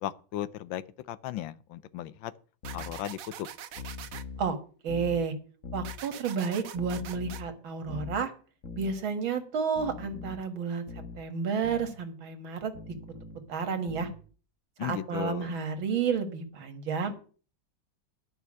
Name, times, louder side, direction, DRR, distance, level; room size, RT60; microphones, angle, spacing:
voice 1, 0.0-2.3 2.7-3.5 14.8-15.6, left 12 dB, 80° left, 1.5 m, -36 dB
sound 1, 2.6-3.0 3.7-4.5 4.9-5.2 5.6-6.0 6.7-7.5 7.9-8.2 8.6-9.0 9.8-10.4 10.9-11.2 11.6-11.9 12.7-13.4 13.9-14.2, left 5 dB, 45° left, 1.4 m, -41 dB
sound 2, 2.6-4.2 5.8-7.4, right 9 dB, 60° right, 1.0 m, -43 dB
voice 2, 4.8-5.3 5.7-8.3 8.8-10.8 11.2-12.7 13.5-14.1 14.8-17.1, right 6 dB, 90° right, 2.4 m, -31 dB
11.0 x 5.8 x 8.6 m
omnidirectional pair, 2.1 m